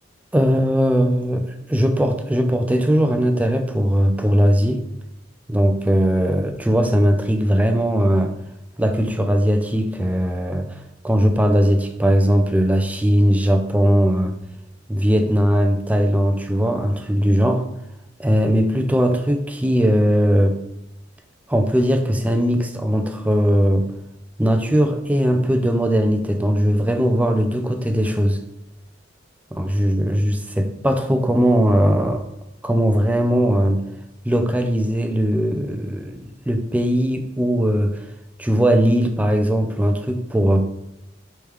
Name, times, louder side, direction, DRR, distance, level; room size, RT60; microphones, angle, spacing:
voice 1, 0.3-4.8 5.5-8.3 8.8-14.3 14.9-17.6 18.2-20.6 21.5-23.9 24.4-28.4 29.5-32.2 32.6-33.8 34.2-38.0 38.4-40.6, equal, 10° right, 6 dB, 0.4 m, -19 dB
5.0 x 3.3 x 3.1 m, 0.87 s
head